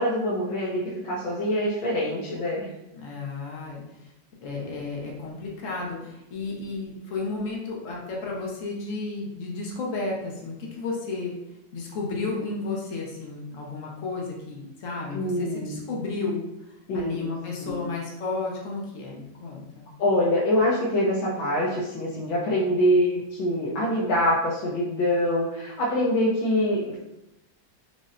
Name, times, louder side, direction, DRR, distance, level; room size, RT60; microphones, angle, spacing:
voice 1, 0.0-2.7 15.1-15.8 16.9-17.3 17.6-17.8 20.0-27.0, left 1 dB, 80° left, -6 dB, 1.4 m, -25 dB
voice 2, 3.0-3.8 4.4-11.3 11.7-16.4 16.9-19.8, left 3 dB, 65° left, -2 dB, 0.8 m, -32 dB
5.4 x 2.0 x 2.5 m, 0.88 s
omnidirectional pair, 2.1 m